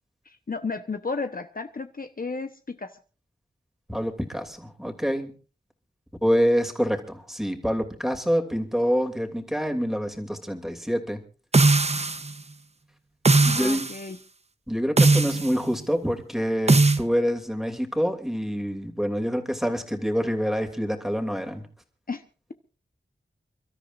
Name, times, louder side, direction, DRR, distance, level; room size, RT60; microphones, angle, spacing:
voice 1, 0.2-3.0 13.4-14.2 22.1-22.2, left 4 dB, 50° left, 7 dB, 1.0 m, -33 dB
voice 2, 3.9-5.3 6.2-11.2 13.4-13.9 14.7-21.6, equal, ahead, 4 dB, 2.8 m, -26 dB
sound 1, 11.5-12.3 13.2-14.0 15.0-15.5 16.7-17.0, right 3 dB, 35° right, 0.9 m, -19 dB
29.5 x 13.5 x 2.6 m, 0.35 s
wide cardioid pair, 90°, 19 cm